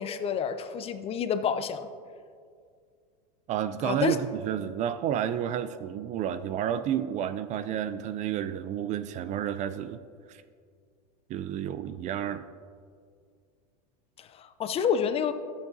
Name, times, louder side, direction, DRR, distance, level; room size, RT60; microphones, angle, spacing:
voice 1, 0.0-1.9 3.8-4.2 14.2-15.3, left 7 dB, 30° left, 11 dB, 0.5 m, -29 dB
voice 2, 3.5-10.0 10.3-10.4 11.3-12.4, right 10 dB, 35° right, 13 dB, 0.4 m, -31 dB
12.0 x 8.2 x 2.6 m, 2.1 s
hypercardioid pair, 110°, 21 cm